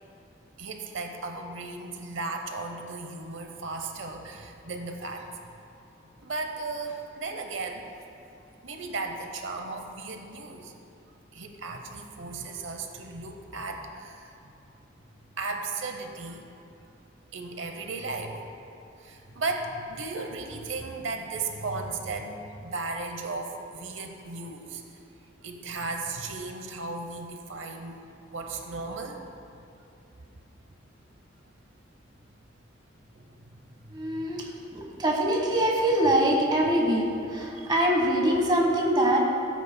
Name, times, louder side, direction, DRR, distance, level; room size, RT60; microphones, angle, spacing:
voice 1, 0.6-5.5 6.2-7.8 8.6-10.7 11.3-14.3 15.4-16.5 17.3-18.4 19.0-24.8 25.4-28.0 28.3-29.2 33.1-33.3 34.1-34.3 37.6-37.7, right 3 dB, 85° right, 4 dB, 0.8 m, -35 dB
voice 2, 33.9-34.4 34.7-39.2, right 1 dB, 25° right, -1 dB, 1.3 m, -24 dB
17.0 x 8.1 x 2.2 m, 2.7 s
head